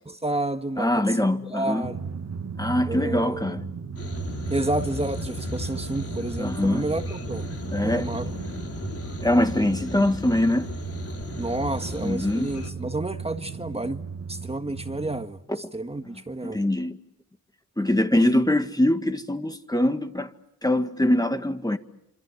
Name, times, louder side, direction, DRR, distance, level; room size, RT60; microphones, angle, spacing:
voice 1, 0.1-2.0 2.9-3.6 4.5-7.5 7.8-8.3 11.4-14.0 14.3-16.6 18.1-18.4, right 2 dB, 15° right, 1.8 m, -30 dB
voice 2, 0.8-1.9 2.6-3.6 6.4-6.8 7.7-8.2 9.2-10.7 12.0-12.5 15.5-15.6 16.4-17.0 17.8-20.3 20.6-21.8, left 1 dB, 10° left, 1.8 m, -23 dB
Drum, 1.8-15.3, right 6 dB, 50° right, 1.9 m, -35 dB
sound 1, 4.0-12.7, left 3 dB, 40° left, 3.8 m, -36 dB
27.0 x 26.5 x 7.4 m
cardioid pair, 60°, 35 cm